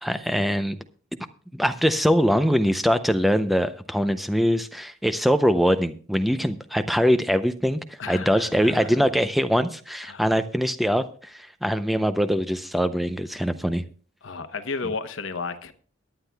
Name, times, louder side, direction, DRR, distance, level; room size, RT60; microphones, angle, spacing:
voice 1, 0.0-0.8 1.5-13.8, equal, ahead, 10 dB, 0.5 m, -23 dB
voice 2, 8.0-9.0 10.1-10.3 14.2-15.7, left 4 dB, 85° left, 9 dB, 0.9 m, -33 dB
22.0 x 9.8 x 2.3 m, 0.42 s
head